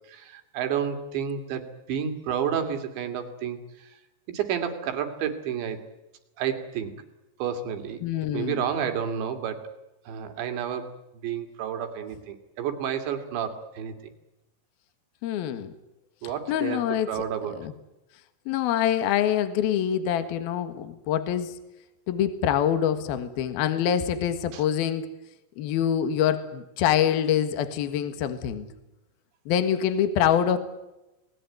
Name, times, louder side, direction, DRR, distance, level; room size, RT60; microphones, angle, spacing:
voice 1, 0.1-3.9 4.3-5.8 6.4-6.9 7.4-8.0 8.3-9.7 10.1-10.9 11.2-13.9 16.2-17.7 24.5-24.6, right 8 dB, 75° right, 4.8 m, -30 dB
voice 2, 8.0-8.6 15.2-15.7 16.5-17.1 17.6-17.7 18.5-21.5 22.1-25.1 25.6-28.7 29.5-30.6, left 9 dB, 65° left, 3.2 m, -25 dB
28.5 x 20.0 x 9.5 m
omnidirectional pair, 5.3 m